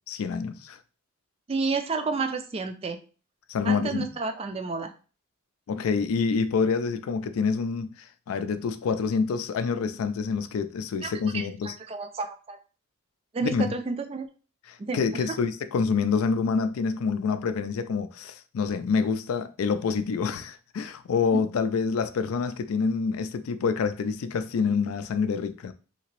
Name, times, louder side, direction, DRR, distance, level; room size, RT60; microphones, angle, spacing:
voice 1, 0.1-0.8 3.5-4.1 5.7-7.9 8.3-11.8 13.4-13.7 14.7-25.7, left 5 dB, 90° left, 0.4 m, -27 dB
voice 2, 1.5-3.0 3.6-4.9 11.0-12.6 13.3-14.3 14.8-15.4 21.3-21.4, right 4 dB, 30° right, 0.3 m, -31 dB
2.9 x 2.8 x 3.0 m
head